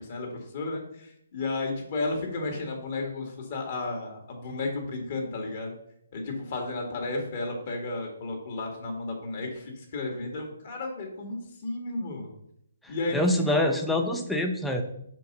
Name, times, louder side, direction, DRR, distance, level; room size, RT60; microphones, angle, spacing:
voice 1, 0.0-5.7 6.1-12.3 12.9-13.7, left 2 dB, 45° left, 2 dB, 1.7 m, -33 dB
voice 2, 12.8-14.8, left 1 dB, 5° left, 2 dB, 0.6 m, -26 dB
5.0 x 4.6 x 5.4 m, 0.72 s
hypercardioid pair, 150°, 0 cm